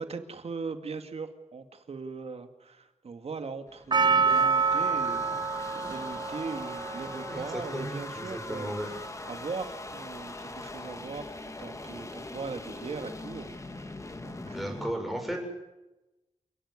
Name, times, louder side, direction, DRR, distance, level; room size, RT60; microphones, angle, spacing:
voice 1, 0.0-9.0 9.3-13.9 14.2-15.1, right 4 dB, 60° right, 8 dB, 2.3 m, -40 dB
sound 1, 3.7-14.9, left 2 dB, 25° left, 2.2 m, -41 dB
Percussion, 3.9-8.3 8.9-9.0, right 5 dB, 40° right, 0.9 m, -27 dB
voice 2, 7.3-8.9 14.4-15.4, equal, ahead, 2 dB, 6.4 m, -35 dB
28.5 x 17.5 x 9.8 m, 1.0 s
wide cardioid pair, 135°, 12 cm